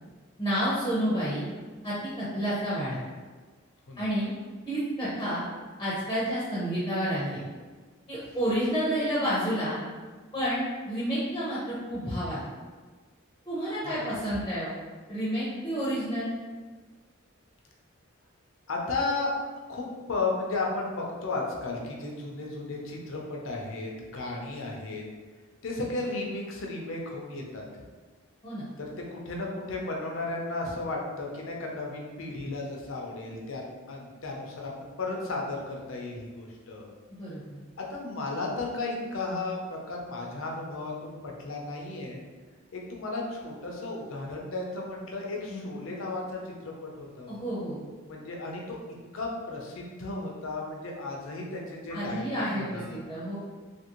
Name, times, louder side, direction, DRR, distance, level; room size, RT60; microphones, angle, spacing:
voice 1, 0.4-1.4 1.8-3.0 4.0-4.3 4.7-5.4 5.8-7.4 8.1-9.8 10.3-12.5 13.5-14.7 15.1-16.3 28.4-28.6 37.2-37.4 45.5-45.8 47.3-47.8 51.9-53.4, equal, 15° left, -9 dB, 0.7 m, -30 dB
voice 2, 18.7-19.3 19.7-25.0 25.6-27.6 28.8-36.9 37.8-42.2 42.7-47.3 48.1-48.8 49.1-53.0, left 3 dB, 65° left, -1 dB, 0.6 m, -34 dB
2.8 x 2.6 x 2.9 m, 1.4 s
head